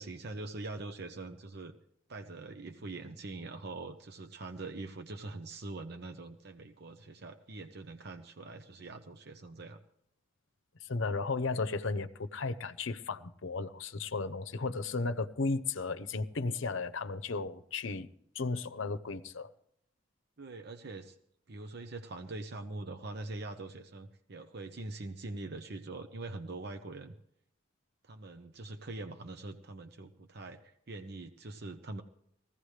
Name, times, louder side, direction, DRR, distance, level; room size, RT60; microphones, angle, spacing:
voice 1, 0.0-1.7 2.1-9.8 20.4-21.2 21.5-27.2 28.0-32.0, right 2 dB, 55° right, 0.8 m, -43 dB
voice 2, 10.9-18.1 18.3-19.5, left 3 dB, 70° left, 0.7 m, -34 dB
19.5 x 16.0 x 3.3 m
head